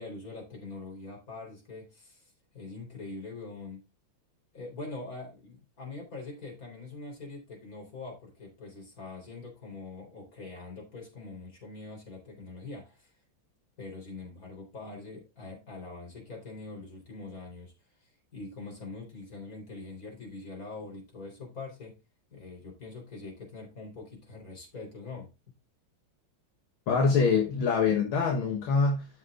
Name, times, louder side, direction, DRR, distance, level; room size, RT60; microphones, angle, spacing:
voice 1, 0.0-3.9 4.5-13.1 13.8-17.7 18.0-22.0 22.3-25.3, left 3 dB, 40° left, 4.3 m, -43 dB
voice 2, 26.9-29.1, left 5 dB, 75° left, 2.1 m, -24 dB
13.0 x 6.3 x 2.4 m
omnidirectional pair, 2.3 m